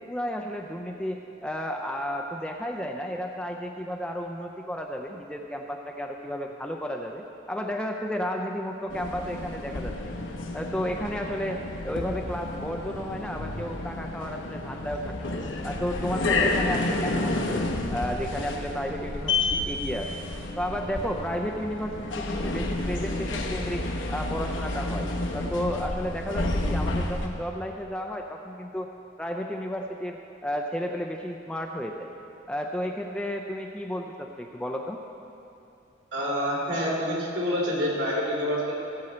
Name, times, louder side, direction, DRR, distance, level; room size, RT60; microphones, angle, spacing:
voice 1, 0.0-10.1 10.5-15.3 15.6-17.4 17.9-20.1 20.6-23.8 24.1-25.1 25.3-28.9 29.2-32.1 32.5-35.0, equal, 5° left, 2 dB, 0.4 m, -32 dB
sound 1, 8.9-27.3, left 2 dB, 90° left, 1.1 m, -30 dB
voice 2, 36.1-38.7, equal, 65° right, -4 dB, 3.1 m, -27 dB
16.5 x 7.7 x 4.3 m, 2.7 s
head